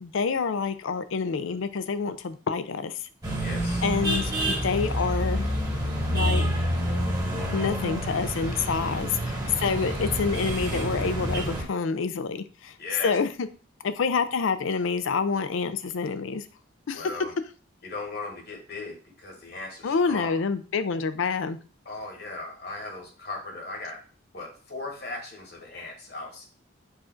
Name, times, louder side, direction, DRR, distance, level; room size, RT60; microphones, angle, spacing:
voice 1, 0.0-2.9 3.8-5.5 6.1-6.5 7.5-12.7 13.0-13.3 13.8-16.4 16.9-17.0 19.8-21.6, left 5 dB, 80° left, 11 dB, 0.4 m, -27 dB
sound 1, 3.2-11.6, equal, 20° right, 0.9 m, -28 dB
voice 2, 3.4-3.8 12.8-13.1 16.9-17.3 17.8-20.4 21.8-24.0 24.3-26.5, left 2 dB, 50° left, 1 dB, 1.3 m, -38 dB
4.7 x 2.5 x 4.3 m, 0.39 s
head